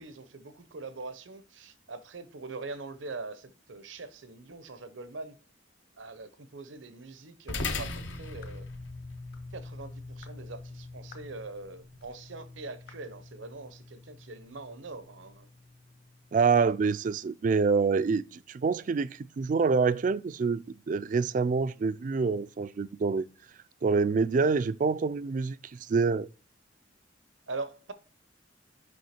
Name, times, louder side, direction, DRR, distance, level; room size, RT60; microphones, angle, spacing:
voice 1, 0.0-5.4 6.0-8.7 9.5-15.5 27.5-27.9, right 3 dB, 85° right, 0.8 m, -42 dB
sound 1, 7.5-16.1, left 3 dB, 80° left, 1.0 m, -41 dB
sound 2, 8.4-8.6 9.3-9.5 10.2-10.4 11.1-11.3 12.0-12.1 12.9-13.1, left 6 dB, 50° left, 1.2 m, -54 dB
voice 2, 16.3-23.3 23.8-26.3, right 4 dB, 45° right, 0.3 m, -26 dB
6.2 x 5.5 x 4.3 m
head